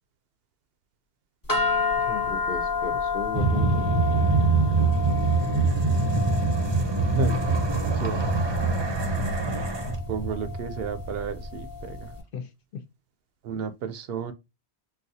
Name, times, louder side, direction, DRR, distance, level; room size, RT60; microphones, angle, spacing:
sound 1, 1.5-12.0, left 5 dB, 20° left, 0.8 m, -31 dB
voice 1, 2.0-3.9 12.3-12.5 12.7-12.8, left 6 dB, 60° left, 0.8 m, -35 dB
sound 2, 3.3-11.5, right 3 dB, 30° right, 0.6 m, -24 dB
voice 2, 9.9-12.1 13.4-14.3, right 4 dB, 70° right, 0.8 m, -32 dB
4.0 x 2.3 x 2.6 m
omnidirectional pair, 1.1 m